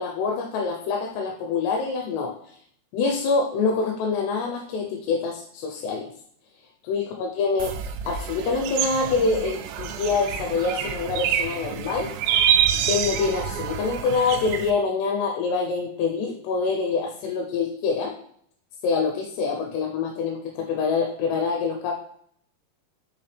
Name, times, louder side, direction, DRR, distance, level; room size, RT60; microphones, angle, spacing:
voice 1, 0.0-2.6 2.9-6.1 6.8-7.7 8.1-12.1 12.9-18.1 18.8-21.9, left 4 dB, 80° left, 2 dB, 3.0 m, -25 dB
sound 1, 7.6-14.7, right 9 dB, 85° right, 2.7 m, -27 dB
6.4 x 5.8 x 3.4 m, 0.64 s
omnidirectional pair, 4.8 m